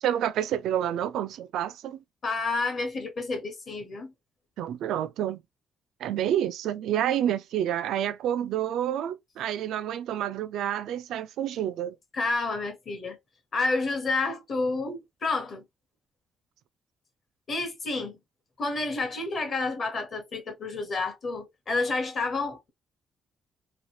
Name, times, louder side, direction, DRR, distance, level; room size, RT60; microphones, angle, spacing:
voice 1, 0.0-2.0 4.6-5.4 6.0-12.0, right 10 dB, 90° right, 0.3 m, -29 dB
voice 2, 2.2-4.1 12.1-13.2 13.5-15.6 17.5-18.2 18.6-22.7, left 3 dB, 35° left, 0.8 m, -30 dB
2.8 x 2.3 x 2.8 m
cardioid pair, 175°, 0 cm